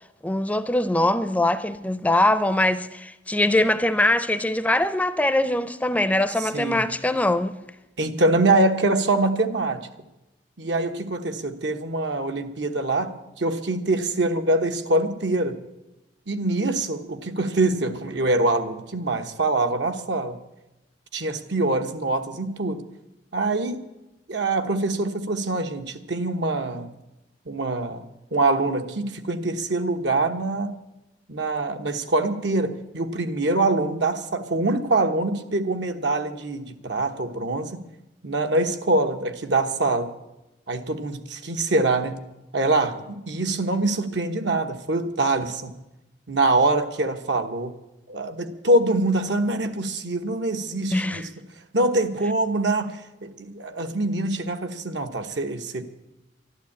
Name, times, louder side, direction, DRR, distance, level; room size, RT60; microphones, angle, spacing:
voice 1, 0.2-7.5 50.9-51.2, left 1 dB, 10° left, 0.5 m, -22 dB
voice 2, 6.4-6.9 8.0-9.8 10.6-15.6 16.3-20.4 21.1-22.8 23.3-23.9 24.3-26.9 27.5-28.0 28.3-30.8 31.3-37.9 38.2-40.1 40.7-42.3 42.5-45.8 46.3-47.7 48.1-51.3 51.7-55.8, right 2 dB, 80° right, 1.2 m, -24 dB
12.0 x 11.5 x 8.6 m
head